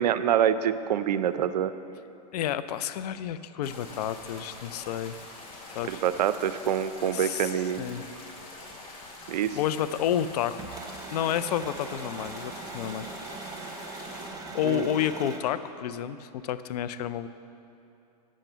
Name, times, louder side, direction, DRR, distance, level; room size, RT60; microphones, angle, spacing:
voice 1, 0.0-1.7 5.9-7.8 9.3-9.6 14.6-14.9, right 9 dB, 80° right, 12 dB, 0.5 m, -26 dB
voice 2, 2.3-5.1 5.7-6.0 7.1-8.1 9.5-10.8 11.1-13.1 14.5-17.3, left 10 dB, 70° left, 13 dB, 0.5 m, -30 dB
sound 1, 3.6-14.3, left 2 dB, 30° left, 2.0 m, -45 dB
sound 2, 10.6-15.4, right 3 dB, 15° right, 1.0 m, -40 dB
8.8 x 7.4 x 6.7 m, 2.7 s
hypercardioid pair, 120°, 21 cm